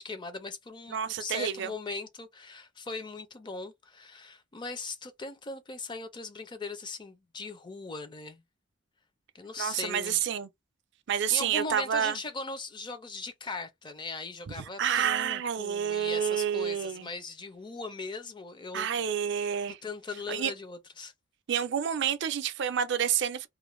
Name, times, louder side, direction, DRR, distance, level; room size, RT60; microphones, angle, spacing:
voice 1, 0.0-8.4 9.3-10.2 11.1-18.9 19.8-21.1, left 3 dB, 25° left, 0.4 m, -39 dB
voice 2, 0.9-1.7 9.6-10.5 11.1-12.2 14.6-17.1 18.7-19.8 20.3-20.5 21.5-23.5, right 8 dB, 60° right, 0.4 m, -29 dB
2.4 x 2.1 x 3.0 m
head